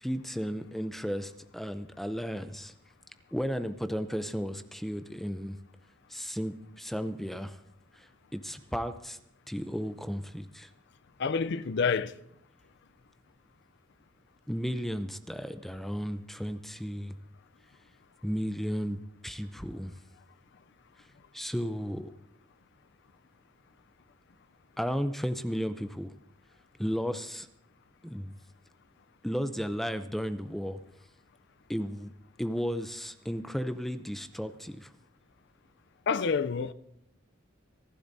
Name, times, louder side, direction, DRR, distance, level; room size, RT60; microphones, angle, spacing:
voice 1, 0.0-2.7 3.3-5.6 6.1-7.6 7.9-9.2 9.5-10.7 14.5-17.1 18.2-19.9 21.3-22.2 24.8-26.1 26.8-27.5 28.0-28.3 29.2-30.8 31.7-32.1 32.4-34.9, equal, ahead, 0.5 m, -34 dB
voice 2, 11.2-12.2 36.1-36.7, left 5 dB, 60° left, 0.5 m, -28 dB
25.0 x 12.5 x 2.7 m
head